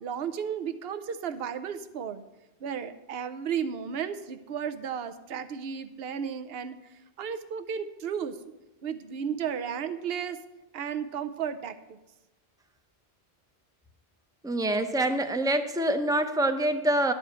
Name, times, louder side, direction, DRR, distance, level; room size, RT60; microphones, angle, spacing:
voice 1, 0.0-2.2 2.6-8.4 8.8-10.4 10.7-12.0, right 7 dB, 70° right, 11 dB, 0.9 m, -34 dB
voice 2, 14.4-17.1, right 1 dB, 5° right, 7 dB, 0.5 m, -25 dB
12.0 x 4.9 x 8.1 m, 1.0 s
omnidirectional pair, 1.1 m